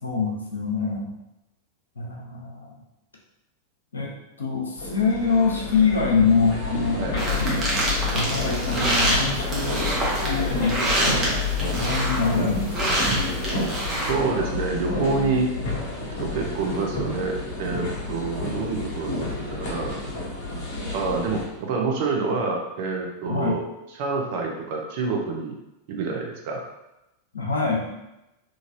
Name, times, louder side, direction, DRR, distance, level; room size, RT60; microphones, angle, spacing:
voice 1, 0.0-1.1 2.0-2.8 3.9-4.1 4.4-7.7 8.1-11.5 11.7-12.9 15.6-15.8 23.2-23.6 27.3-27.9, left 4 dB, 75° left, -1 dB, 0.6 m, -25 dB
sound 1, 4.8-21.5, left 3 dB, 50° left, 0.9 m, -29 dB
sound 2, 7.2-14.1, right 1 dB, 20° right, 0.9 m, -26 dB
voice 2, 14.0-15.5 16.2-19.3 19.6-20.0 20.9-23.6 24.0-25.6 25.9-26.6, right 4 dB, 50° right, 1 dB, 0.5 m, -27 dB
3.0 x 2.5 x 2.5 m, 0.93 s
figure-of-eight pair, 90°, 0 cm